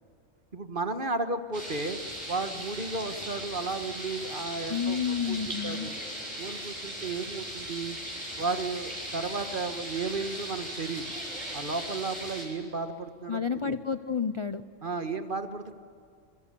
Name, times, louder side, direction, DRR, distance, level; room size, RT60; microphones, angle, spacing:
voice 1, 0.5-2.0 2.3-5.0 5.3-6.0 6.4-8.0 8.4-11.2 11.5-13.7 14.8-15.7, right 3 dB, 45° right, 8 dB, 1.6 m, -33 dB
sound 1, 1.5-12.4, equal, 30° right, 7.7 m, -38 dB
voice 2, 4.7-5.9 13.3-14.6, left 6 dB, 35° left, 10 dB, 0.6 m, -30 dB
27.5 x 24.0 x 6.9 m, 2.4 s
omnidirectional pair, 1.3 m